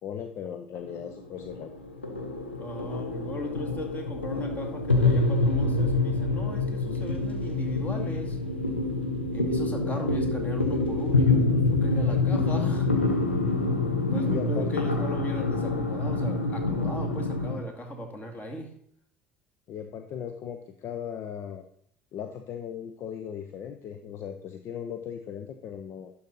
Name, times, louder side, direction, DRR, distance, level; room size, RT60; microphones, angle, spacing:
voice 1, 0.0-1.7 14.3-14.7 19.7-21.6 22.1-26.1, left 8 dB, 50° left, 7 dB, 0.6 m, -37 dB
sound 1, 0.8-17.6, left 2 dB, 85° left, 0.8 m, -26 dB
voice 2, 2.6-8.4 9.3-12.9 14.1-18.7, left 1 dB, 25° left, 2 dB, 2.2 m, -38 dB
11.5 x 4.2 x 4.1 m, 0.65 s
figure-of-eight pair, 60°, 6 cm